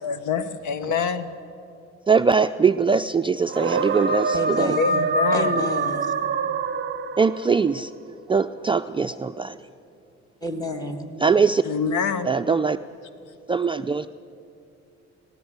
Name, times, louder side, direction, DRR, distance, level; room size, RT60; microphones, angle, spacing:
voice 1, 0.0-1.3 4.7-5.6 11.6-12.3, left 6 dB, 75° left, 12 dB, 1.2 m, -25 dB
voice 2, 2.1-4.8 7.2-7.9 8.3-9.6 11.2-11.6 12.2-12.8 13.5-14.1, right 5 dB, 15° right, 8 dB, 0.4 m, -21 dB
sound 1, 3.5-7.6, right 3 dB, 40° right, 0.9 m, -25 dB
voice 3, 4.3-5.1 5.3-6.1 10.4-11.1, left 1 dB, 10° left, 6 dB, 2.2 m, -29 dB
18.5 x 17.5 x 8.1 m, 2.7 s
cardioid pair, 90°, 30 cm